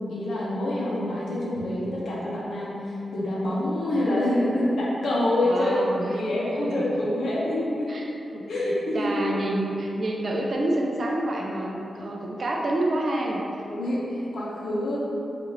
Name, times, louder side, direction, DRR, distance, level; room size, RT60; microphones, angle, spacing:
voice 1, 0.0-5.7 6.1-7.9 8.5-9.1 13.6-15.0, left 1 dB, 70° left, -7 dB, 0.6 m, -26 dB
voice 2, 5.4-6.8 7.9-8.5 8.9-13.4, right 1 dB, 40° right, -1 dB, 0.3 m, -28 dB
2.7 x 2.4 x 3.0 m, 2.8 s
wide cardioid pair, 165°, 0 cm